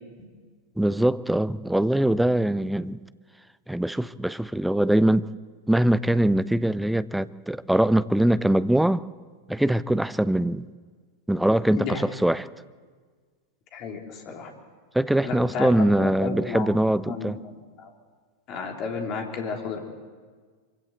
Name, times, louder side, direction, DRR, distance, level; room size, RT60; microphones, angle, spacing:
voice 1, 0.8-3.0 3.7-5.3 5.7-9.0 9.5-10.7 11.3-12.5 14.9-17.4, right 1 dB, 5° right, 0.5 m, -22 dB
voice 2, 13.7-14.5 15.2-15.7 16.0-16.7 17.1-17.9 18.5-19.8, left 5 dB, 35° left, 3.5 m, -32 dB
25.0 x 16.5 x 8.0 m
figure-of-eight pair, 90°, 0 cm